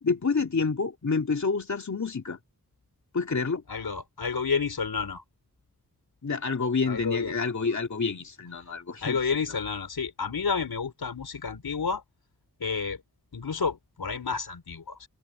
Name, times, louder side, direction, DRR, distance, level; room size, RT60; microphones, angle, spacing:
voice 1, 0.0-2.4 3.1-3.6 6.2-9.2 9.5-9.6, left 4 dB, 50° left, 2.6 m, -28 dB
voice 2, 3.7-5.2 6.9-7.3 9.0-12.0 12.6-13.0 13.3-15.1, left 5 dB, 85° left, 4.4 m, -30 dB
open air
wide cardioid pair, 100°, 36 cm